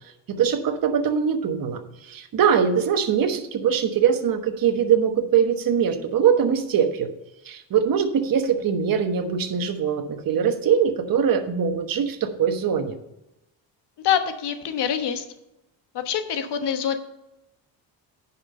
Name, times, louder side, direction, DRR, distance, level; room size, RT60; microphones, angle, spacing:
voice 1, 0.3-7.1 7.4-13.0, right 7 dB, 50° right, 7 dB, 1.2 m, -22 dB
voice 2, 14.0-15.2 15.9-17.0, left 9 dB, 60° left, 7 dB, 1.2 m, -25 dB
9.8 x 5.5 x 5.3 m, 0.89 s
cardioid pair, 110°, 45 cm